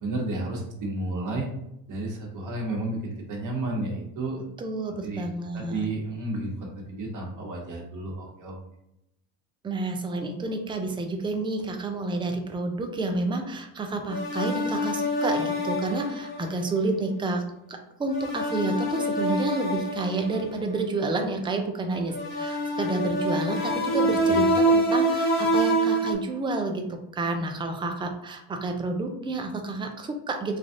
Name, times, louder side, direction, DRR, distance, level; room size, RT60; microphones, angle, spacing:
voice 1, 0.0-1.5 1.9-4.4 5.0-5.3 5.5-8.6 24.3-24.5, right 2 dB, 45° right, -1 dB, 1.0 m, -32 dB
voice 2, 4.6-5.9 9.6-17.4 17.7-30.6, right 2 dB, 10° right, 4 dB, 0.4 m, -30 dB
sound 1, 14.1-16.6 18.1-20.5 22.1-26.2, right 1 dB, 65° left, 0.9 m, -25 dB
3.2 x 2.3 x 2.5 m, 0.83 s
hypercardioid pair, 75°, 44 cm